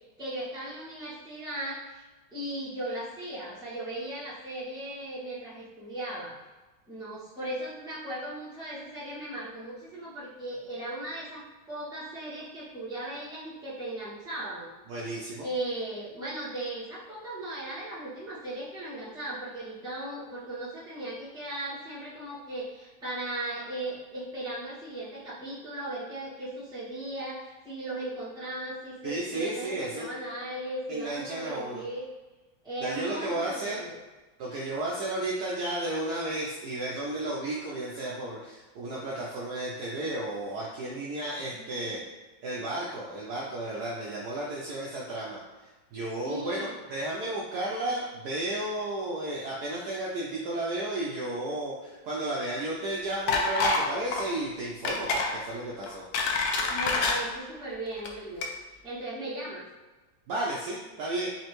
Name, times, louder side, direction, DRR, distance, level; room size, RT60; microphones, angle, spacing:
voice 1, 0.2-2.0 2.3-6.3 6.9-14.7 15.4-32.0 32.6-33.9 41.5-42.0 46.2-46.7 56.7-58.5 58.8-59.6, right 1 dB, 5° right, -11 dB, 1.0 m, -37 dB
voice 2, 14.9-15.5 29.0-30.1 30.9-31.8 32.8-33.8 34.4-42.0 42.4-56.0 60.3-61.3, right 1 dB, 70° right, -4 dB, 1.0 m, -33 dB
sound 1, 53.3-53.9 54.1-54.3 54.8-55.3 55.8-57.2 57.9-58.1 58.4-58.5, left 3 dB, 75° left, 0.9 m, -26 dB
4.3 x 2.8 x 3.0 m, 1.2 s
omnidirectional pair, 2.1 m